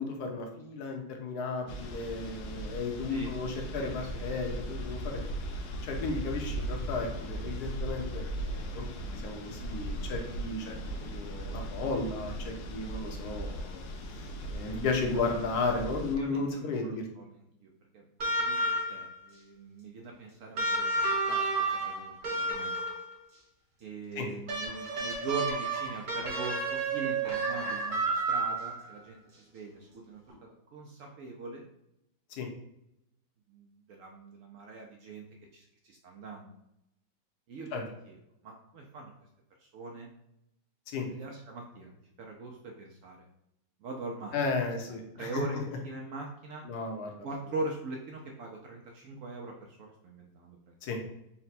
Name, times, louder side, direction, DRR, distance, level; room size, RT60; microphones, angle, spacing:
voice 1, 0.0-5.2 5.8-8.8 9.1-10.7 11.0-13.8 14.5-17.0 24.2-24.3 32.3-32.5 37.7-37.8 40.9-41.1 44.3-45.4 46.6-47.3 50.8-51.0, left 3 dB, 70° left, 2 dB, 1.2 m, -34 dB
sound 1, 1.7-16.1, right 1 dB, 90° left, 1.3 m, -38 dB
voice 2, 3.8-4.2 5.6-5.7 16.1-18.1 18.4-22.8 23.8-31.6 33.5-35.3 35.5-36.6 37.5-39.1 39.6-40.1 41.1-41.9 42.2-43.3 43.8-44.4 44.9-46.6 47.2-50.7, right 3 dB, 75° right, 0 dB, 0.7 m, -42 dB
sound 2, 18.2-19.1 20.6-23.1 24.5-28.9 30.3-30.4, right 2 dB, 50° right, 1.6 m, -31 dB
4.1 x 2.2 x 4.1 m, 0.81 s
omnidirectional pair, 1.9 m